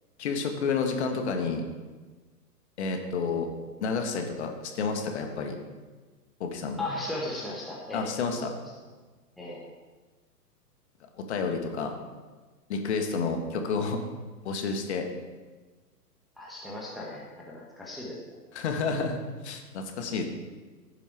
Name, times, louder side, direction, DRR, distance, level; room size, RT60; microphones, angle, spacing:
voice 1, 0.2-1.6 2.8-3.5 3.8-4.5 4.8-5.6 6.4-6.8 7.9-8.5 11.2-11.9 12.7-14.0 14.5-15.1 18.5-20.2, left 4 dB, 45° left, 4 dB, 1.7 m, -30 dB
voice 2, 6.8-8.0 9.4-9.6 16.4-18.2, left 1 dB, ahead, -5 dB, 1.2 m, -36 dB
15.5 x 7.0 x 4.7 m, 1.3 s
figure-of-eight pair, 125°, 49 cm